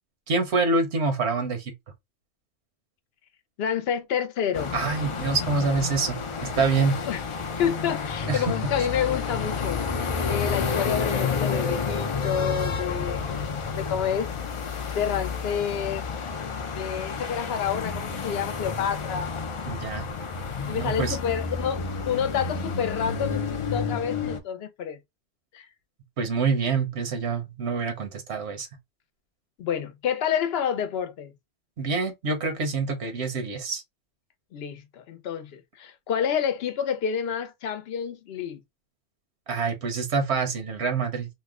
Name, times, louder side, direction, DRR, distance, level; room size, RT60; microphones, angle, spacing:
voice 1, 0.3-1.7 4.7-6.2 6.5-7.0 8.2-8.5 19.7-20.1 20.6-21.2 26.2-28.7 31.8-33.8 39.5-41.3, right 4 dB, 85° right, 1.1 m, -26 dB
voice 2, 3.6-4.7 7.1-7.2 7.6-13.2 13.8-14.3 14.9-16.0 16.8-19.3 20.7-25.0 25.5-25.7 29.6-31.3 34.5-38.6, left 8 dB, 70° left, 0.8 m, -29 dB
sound 1, 4.5-24.4, left 5 dB, 50° left, 0.4 m, -30 dB
2.9 x 2.1 x 3.5 m
omnidirectional pair, 1.1 m